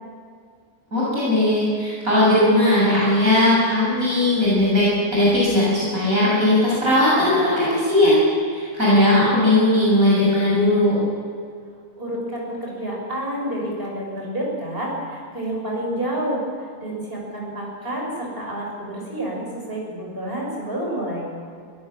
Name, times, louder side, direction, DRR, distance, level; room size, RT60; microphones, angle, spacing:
voice 1, 0.9-8.2 8.5-11.0, left 1 dB, 60° right, -8 dB, 7.8 m, -18 dB
voice 2, 12.0-16.4 16.8-21.3, right 1 dB, 35° right, -2 dB, 7.0 m, -29 dB
23.0 x 18.0 x 7.4 m, 2.2 s
omnidirectional pair, 1.7 m